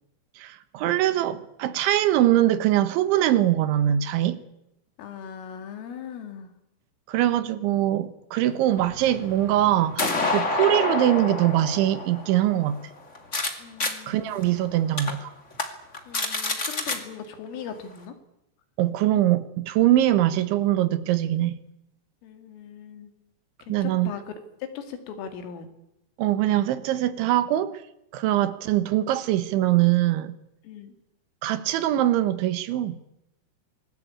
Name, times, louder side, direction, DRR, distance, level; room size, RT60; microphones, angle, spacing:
voice 1, 0.4-4.4 7.1-12.8 14.1-15.3 18.8-21.6 23.7-24.1 26.2-27.7 28.1-30.3 31.4-33.0, right 13 dB, 75° right, 3.3 m, -22 dB
voice 2, 5.0-6.5 13.6-14.5 16.1-18.2 22.2-23.1 23.7-24.3 24.8-25.7 28.2-28.5 30.6-30.9, left 7 dB, 75° left, 5.0 m, -39 dB
sound 1, 8.8-13.5 13.8-13.9 14.4-14.5 15.0-15.1 15.5-15.6 15.9-17.0, left 3 dB, 30° left, 1.3 m, -28 dB
26.0 x 20.0 x 8.8 m
omnidirectional pair, 5.9 m